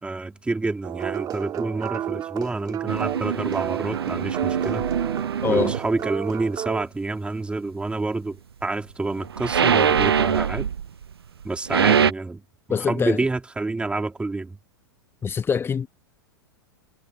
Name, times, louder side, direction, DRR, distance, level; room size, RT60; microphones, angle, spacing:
voice 1, 0.0-4.8 5.5-10.7 11.4-12.4 12.7-14.6, right 3 dB, 10° right, 3.0 m, -28 dB
sound 1, 0.8-6.9, right 11 dB, 30° right, 2.2 m, -31 dB
sound 2, 2.9-5.9 9.1-11.0 11.4-12.1, right 7 dB, 75° right, 0.6 m, -23 dB
voice 2, 5.4-5.7 12.7-13.2 15.2-15.9, left 6 dB, 15° left, 1.7 m, -24 dB
figure-of-eight pair, 95°, 13 cm